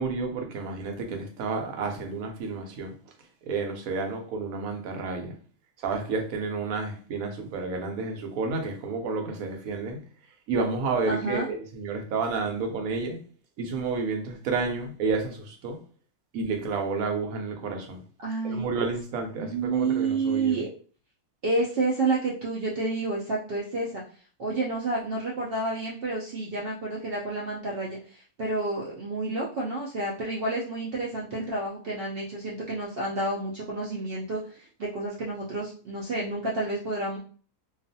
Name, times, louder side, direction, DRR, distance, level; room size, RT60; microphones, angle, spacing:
voice 1, 0.0-2.9 3.5-5.3 5.8-10.0 10.5-13.2 13.6-15.8 16.3-18.0 18.4-20.6, right 4 dB, 70° right, 4 dB, 1.0 m, -30 dB
voice 2, 11.1-11.5 18.2-18.7 19.4-20.7 21.4-24.0 24.4-37.2, right 3 dB, 85° right, -4 dB, 0.5 m, -29 dB
2.3 x 2.3 x 2.6 m, 0.42 s
omnidirectional pair, 1.6 m